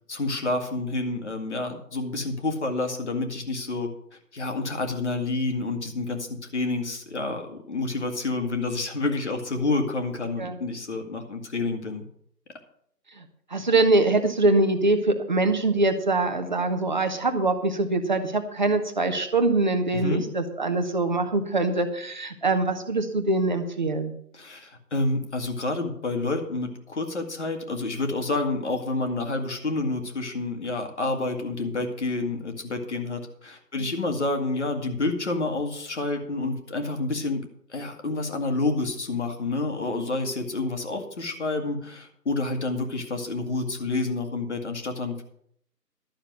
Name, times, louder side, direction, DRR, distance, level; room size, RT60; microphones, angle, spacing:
voice 1, 0.1-3.9 4.3-12.0 19.9-20.3 24.3-37.4 37.7-45.2, left 2 dB, 45° left, 5 dB, 2.0 m, -29 dB
voice 2, 13.5-24.1 33.8-33.9, right 2 dB, 30° right, 6 dB, 1.0 m, -23 dB
12.0 x 6.5 x 7.7 m, 0.67 s
figure-of-eight pair, 160°, 49 cm